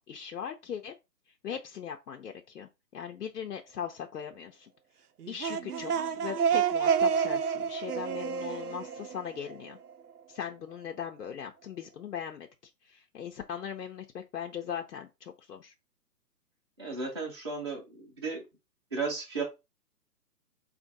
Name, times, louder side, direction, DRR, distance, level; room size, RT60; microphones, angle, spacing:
voice 1, 0.1-0.9 1.4-4.7 5.3-9.8 10.3-12.5 12.9-15.7, left 8 dB, 70° left, 0.8 m, -39 dB
sound 1, 5.2-9.9, right 7 dB, 65° right, 0.6 m, -29 dB
voice 2, 16.8-18.4 18.9-19.4, right 4 dB, 15° right, 0.7 m, -34 dB
4.4 x 2.5 x 3.9 m
hypercardioid pair, 165°, 49 cm